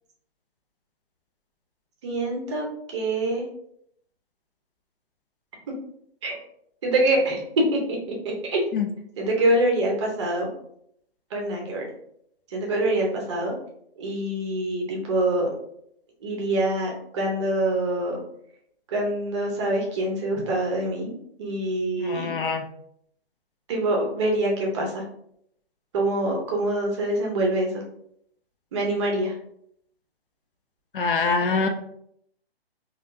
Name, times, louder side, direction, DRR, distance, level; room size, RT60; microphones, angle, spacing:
voice 1, 2.0-2.7 2.9-3.4 6.2-6.4 6.8-7.8 8.4-8.6 9.2-10.5 11.3-11.8 12.5-13.5 14.0-15.5 16.2-18.2 18.9-22.3 23.7-25.0 25.9-27.7 28.7-29.4, right 1 dB, 30° right, -1 dB, 0.7 m, -25 dB
voice 2, 22.0-22.7 30.9-31.7, left 4 dB, 60° left, 5 dB, 0.5 m, -24 dB
3.4 x 2.4 x 2.6 m, 0.71 s
hypercardioid pair, 140°, 31 cm